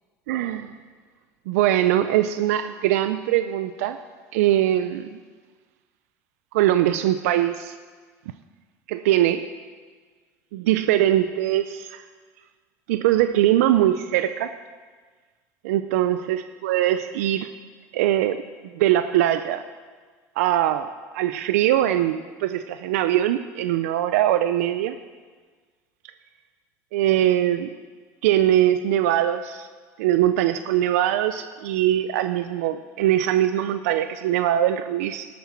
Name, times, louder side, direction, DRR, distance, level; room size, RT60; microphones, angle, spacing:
voice 1, 0.3-0.7 1.5-4.0 4.3-5.1 6.5-7.7 8.9-9.5 10.5-12.0 12.9-14.5 15.6-17.5 17.9-18.4 18.7-19.6 20.4-20.9 21.1-25.0 26.9-27.7 28.2-29.7 30.0-35.3, right 12 dB, 90° right, 11 dB, 0.4 m, -22 dB
12.0 x 8.4 x 4.4 m, 1.5 s
supercardioid pair, 90°, 8 cm